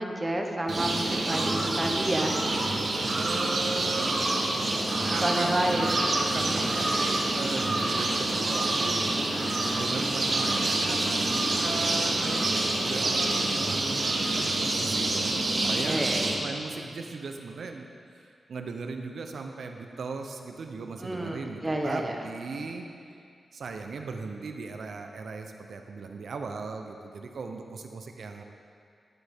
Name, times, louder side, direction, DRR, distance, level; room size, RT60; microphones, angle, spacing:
voice 1, 0.0-2.3 5.2-5.9 6.5-7.1 15.6-16.4 21.0-22.2, right 1 dB, 20° right, 2 dB, 0.9 m, -30 dB
sound 1, 0.7-16.3, right 2 dB, 50° right, 1.0 m, -27 dB
voice 2, 3.1-4.1 5.1-9.0 9.7-16.0 16.4-17.9 18.5-22.9 23.5-28.4, right 4 dB, 75° right, 4 dB, 0.7 m, -38 dB
sound 2, 3.6-13.6, left 1 dB, 60° left, 1.6 m, -42 dB
11.5 x 7.7 x 3.6 m, 2.4 s
wide cardioid pair, 100°, 0 cm